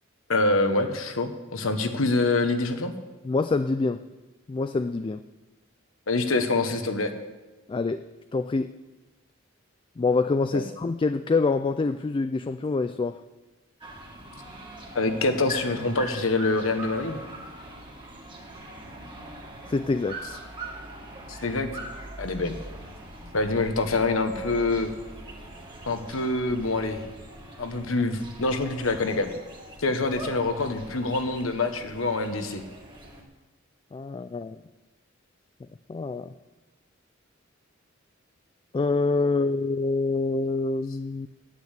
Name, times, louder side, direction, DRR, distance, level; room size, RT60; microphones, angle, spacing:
voice 1, 0.3-2.9 6.1-7.1 10.5-10.6 14.9-17.2 21.3-21.7 22.2-22.6 23.3-24.9 25.9-27.0 27.6-29.3 29.8-32.6, left 2 dB, 90° left, 7 dB, 1.2 m, -25 dB
voice 2, 3.2-4.0 4.5-5.2 7.7-8.0 8.3-8.7 10.0-13.2 19.7-20.4 33.9-34.6 35.9-36.3 38.7-41.3, left 3 dB, 25° left, 11 dB, 0.3 m, -26 dB
sound 1, 13.8-33.2, right 1 dB, 25° right, 1.8 m, -42 dB
9.3 x 8.6 x 8.2 m, 1.1 s
head